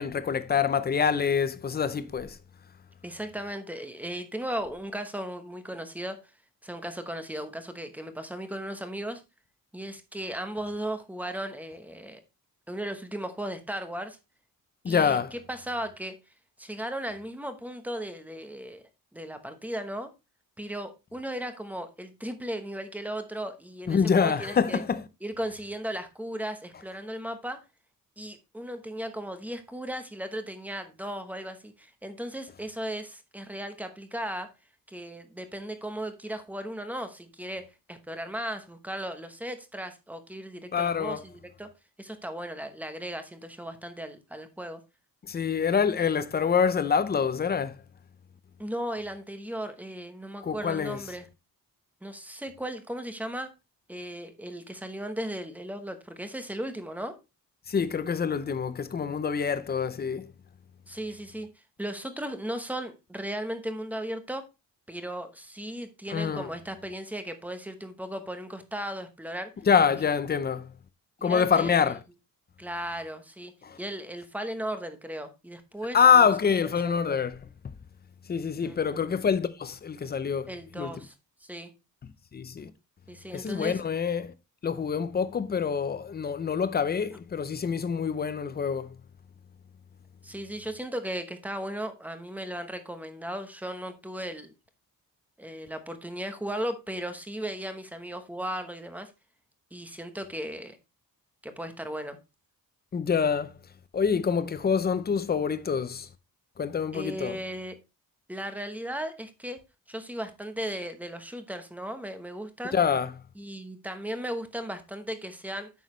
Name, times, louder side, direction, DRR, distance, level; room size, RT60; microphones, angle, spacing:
voice 1, 0.0-2.4 14.8-15.3 23.9-25.0 40.7-41.2 45.3-47.8 50.4-51.0 57.7-60.3 66.1-66.5 69.7-70.7 71.2-72.0 73.6-73.8 75.9-77.3 78.3-80.5 80.8-80.9 82.3-82.7 83.3-84.3 84.6-88.9 102.9-103.6 103.9-106.1 106.6-107.4 112.7-113.1, left 6 dB, 25° left, 0.6 m, -26 dB
voice 2, 3.0-6.2 6.6-9.2 9.7-12.2 12.7-14.2 14.8-16.1 16.6-18.8 19.1-20.1 20.6-24.8 25.2-27.6 28.2-34.5 34.9-41.7 42.0-44.8 48.6-51.3 52.0-53.5 53.9-57.2 60.9-64.4 64.9-69.5 70.0-70.1 71.2-71.7 72.6-73.5 73.8-76.3 76.8-77.2 78.6-79.0 80.5-81.1 81.4-81.7 83.1-83.8 90.2-94.5 95.4-99.1 99.7-100.8 101.4-102.2 106.9-107.8 108.3-109.6 109.9-112.8 113.3-115.7, right 1 dB, 5° right, 0.9 m, -36 dB
9.2 x 6.4 x 3.1 m
wide cardioid pair, 175°, 36 cm